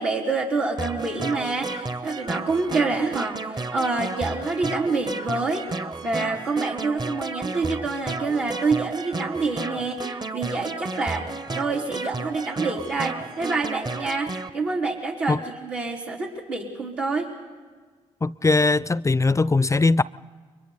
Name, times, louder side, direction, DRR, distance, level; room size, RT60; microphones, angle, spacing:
voice 1, 0.0-5.7 6.0-11.3 11.5-17.3, right 3 dB, 85° right, 3.8 m, -27 dB
sound 1, 0.8-14.5, right 3 dB, 25° right, 1.0 m, -32 dB
voice 2, 18.2-20.0, left 3 dB, 20° left, 0.5 m, -20 dB
29.5 x 23.5 x 4.1 m
hypercardioid pair, 40°, 15 cm